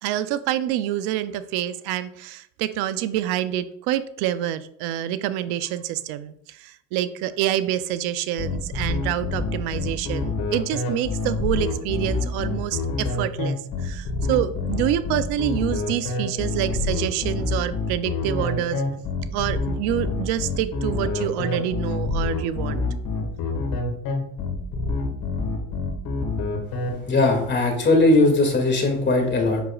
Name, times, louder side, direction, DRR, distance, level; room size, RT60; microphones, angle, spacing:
voice 1, 0.0-18.8 19.3-22.8, right 12 dB, 85° right, 13 dB, 0.6 m, -27 dB
sound 1, 8.4-26.9, left 3 dB, 60° left, 2.0 m, -26 dB
voice 2, 26.9-29.6, left 2 dB, 30° left, 2 dB, 2.2 m, -19 dB
8.0 x 6.1 x 2.4 m, 0.67 s
cardioid pair, 100°, 38 cm